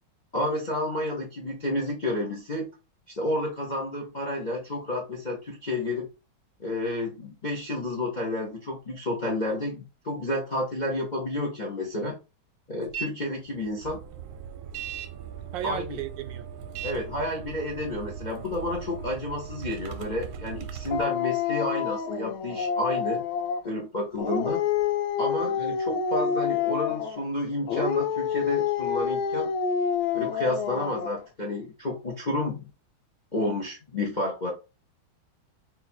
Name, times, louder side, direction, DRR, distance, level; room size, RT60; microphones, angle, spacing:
voice 1, 0.3-2.7 3.1-6.1 6.6-12.2 12.7-14.0 15.6-16.0 16.8-23.2 23.6-24.6 25.2-29.5 30.1-32.7 33.3-34.5, left 1 dB, 40° left, 0.6 m, -30 dB
sound 1, 12.9-13.1 13.5-21.0, right 8 dB, 90° right, 1.4 m, -39 dB
voice 2, 15.5-16.5 25.6-25.8, right 10 dB, 75° right, 1.2 m, -34 dB
Dog, 20.9-23.7 24.2-27.3 27.7-31.2, left 7 dB, 85° left, 1.4 m, -28 dB
4.0 x 2.6 x 4.3 m
omnidirectional pair, 2.2 m